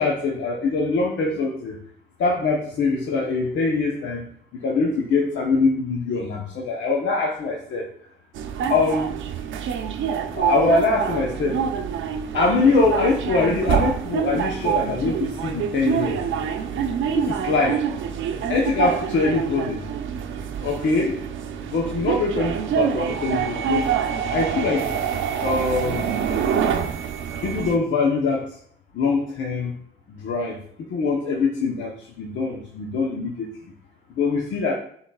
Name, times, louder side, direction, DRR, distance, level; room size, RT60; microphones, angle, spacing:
voice 1, 0.0-1.8 2.2-4.2 4.6-7.9 8.7-9.1 10.4-11.6 12.3-16.2 17.2-17.8 18.5-19.8 20.6-21.2 21.7-23.9 24.3-24.9 25.4-26.1 27.4-28.5 28.9-29.7 30.1-33.5 34.2-34.7, left 3 dB, 70° left, -1 dB, 0.9 m, -23 dB
sound 1, 8.4-27.8, right 8 dB, 80° right, 0.7 m, -26 dB
11.5 x 3.9 x 2.3 m, 0.63 s
cardioid pair, 90°, 20 cm